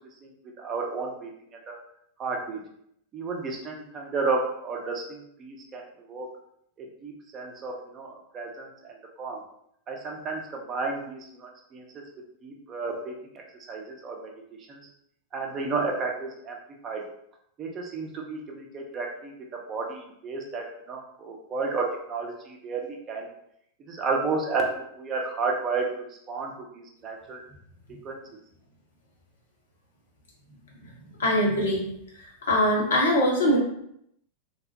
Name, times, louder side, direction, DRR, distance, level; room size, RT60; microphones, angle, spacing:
voice 1, 0.6-1.3 1.7-1.8 2.2-2.6 3.1-6.3 6.8-9.4 9.9-11.8 12.4-13.3 13.7-14.3 14.7-14.8 15.3-16.6 16.8-17.0 17.6-19.3 19.7-23.3 23.9-24.7 25.0-27.4 28.0-28.2, right 4 dB, 30° right, 0 dB, 0.6 m, -32 dB
voice 2, 31.2-31.8 32.5-33.6, equal, 65° left, -3 dB, 0.9 m, -22 dB
2.9 x 2.0 x 2.8 m, 0.73 s
figure-of-eight pair, 90°, 0 cm